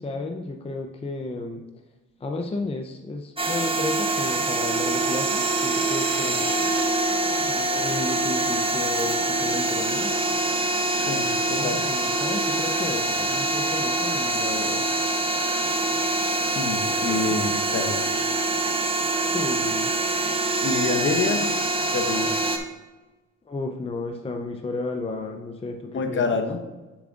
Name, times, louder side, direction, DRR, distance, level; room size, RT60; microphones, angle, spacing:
voice 1, 0.0-1.6 2.2-6.3 7.5-10.1 11.5-14.8 19.3-19.9 23.5-26.3, left 3 dB, 20° left, 3 dB, 0.6 m, -33 dB
sound 1, 3.4-22.6, right 2 dB, 20° right, 0.9 m, -25 dB
voice 2, 11.1-11.8 16.5-18.1 20.6-21.5 21.9-22.4 25.9-26.6, left 4 dB, 40° left, 5 dB, 0.9 m, -27 dB
7.3 x 7.1 x 2.5 m, 1.1 s
cardioid pair, 90°, 30 cm